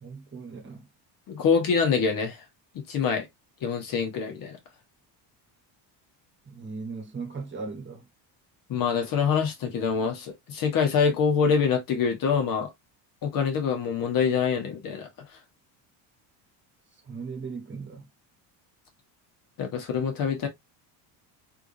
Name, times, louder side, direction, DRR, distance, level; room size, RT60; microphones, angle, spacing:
voice 1, 0.0-0.9 6.4-8.1 17.0-18.1, right 4 dB, 25° right, 1.3 m, -38 dB
voice 2, 1.3-2.4 2.7-3.3 3.6-4.6 8.7-12.7 13.2-15.1 19.6-20.5, left 6 dB, 50° left, 1.3 m, -25 dB
3.5 x 3.2 x 2.6 m
cardioid pair, 155°, 44 cm